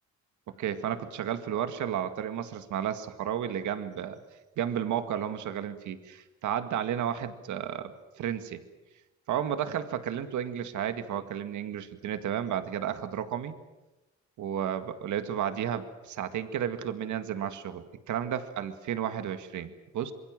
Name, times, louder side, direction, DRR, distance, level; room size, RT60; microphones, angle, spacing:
voice 1, 0.6-4.2 4.6-8.6 9.3-13.5 14.4-20.1, right 9 dB, 75° right, 9 dB, 2.0 m, -32 dB
26.0 x 22.5 x 7.6 m, 1.0 s
cardioid pair, 90°, 30 cm